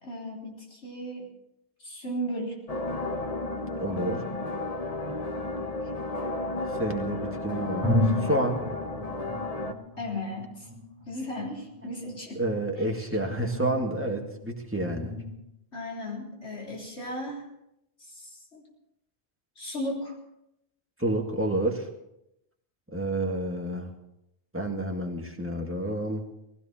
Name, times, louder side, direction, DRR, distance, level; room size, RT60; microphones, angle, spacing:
voice 1, 0.0-1.3 1.8-2.6 5.1-5.2 10.0-10.7 11.1-12.4 12.8-13.1 15.7-17.5 18.1-18.7 19.6-20.2, equal, 85° left, -2 dB, 4.1 m, -36 dB
sound 1, 2.7-9.7, left 2 dB, 35° left, 1.1 m, -33 dB
voice 2, 3.8-4.2 6.7-8.6 12.3-15.1 21.0-21.9 22.9-23.9 24.5-26.2, right 1 dB, 10° right, 1 dB, 2.0 m, -29 dB
sound 2, 7.8-15.4, left 1 dB, 15° left, 4.4 m, -34 dB
19.5 x 16.0 x 4.3 m, 0.83 s
omnidirectional pair, 1.1 m